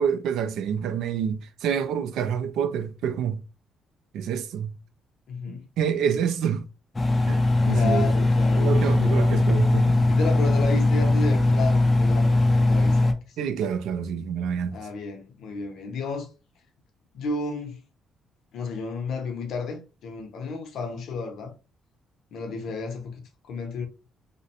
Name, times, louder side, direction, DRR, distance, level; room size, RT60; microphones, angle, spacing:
voice 1, 0.0-3.4 4.1-4.7 5.5-6.7 7.3-8.1 8.6-10.1 13.4-14.8, right 7 dB, 85° right, 0.4 m, -27 dB
voice 2, 5.3-5.7 7.7-9.3 10.1-13.1 14.7-16.3 17.1-17.8 18.5-21.5 22.3-23.2 23.5-23.9, left 4 dB, 65° left, 0.6 m, -32 dB
Engine, 6.9-13.1, left 2 dB, 15° left, 0.3 m, -20 dB
2.4 x 2.0 x 2.8 m
cardioid pair, 160°, 0 cm